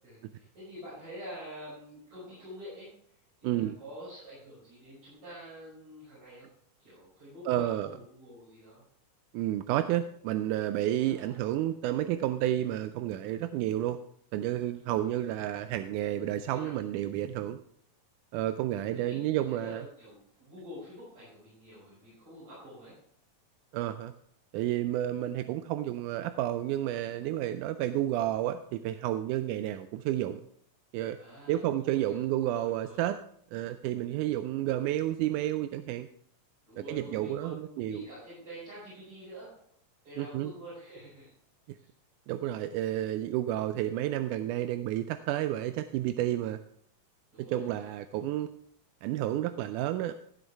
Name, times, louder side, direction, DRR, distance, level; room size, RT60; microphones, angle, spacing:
voice 1, 0.0-2.9 3.4-6.5 6.8-8.8 11.1-11.5 14.8-15.2 16.5-16.8 18.9-23.0 31.2-33.0 36.6-39.5 40.0-41.3 41.8-41.9 43.7-43.9 47.3-47.9, equal, 55° right, -10 dB, 7.1 m, -47 dB
voice 2, 3.4-3.8 7.5-7.9 9.3-14.0 14.3-17.6 18.3-19.8 23.7-24.1 24.5-30.4 30.9-31.2 31.5-33.2 33.5-36.1 36.9-38.1 40.2-40.5 41.7-41.8 42.3-46.6 47.5-48.5 49.0-50.1, right 13 dB, 80° right, 10 dB, 1.9 m, -31 dB
15.5 x 8.1 x 3.4 m, 0.64 s
omnidirectional pair, 3.9 m